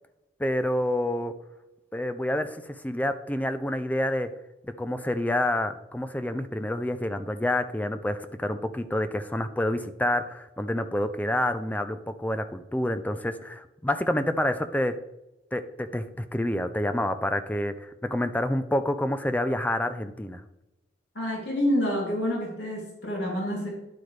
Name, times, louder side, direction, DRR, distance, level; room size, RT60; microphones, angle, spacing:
voice 1, 0.4-1.3 1.9-2.6 2.8-4.3 4.8-14.9 15.5-20.4, left 1 dB, 10° left, 10 dB, 0.5 m, -28 dB
voice 2, 21.1-23.7, equal, 75° left, -3 dB, 3.0 m, -28 dB
10.5 x 8.0 x 3.3 m, 0.98 s
head